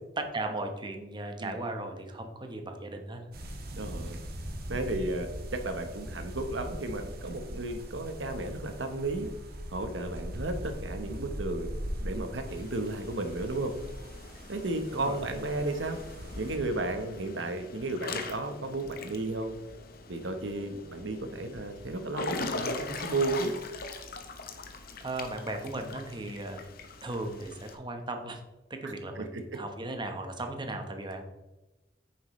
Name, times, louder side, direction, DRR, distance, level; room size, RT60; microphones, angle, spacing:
voice 1, 0.2-3.2 14.9-15.2 25.0-26.6 27.0-28.4 28.7-31.2, right 2 dB, 25° right, 5 dB, 1.0 m, -36 dB
sound 1, 3.3-16.6, equal, 55° right, 1.3 m, -40 dB
voice 2, 3.8-4.2 4.7-9.3 9.7-13.7 14.5-16.0 16.3-19.6 20.1-23.5 28.8-29.6, right 2 dB, 85° right, 7 dB, 1.0 m, -33 dB
Water / Splash splatter / Drip, 12.5-27.7, left 3 dB, 55° left, 0.9 m, -42 dB
9.1 x 7.2 x 3.1 m, 1.0 s
head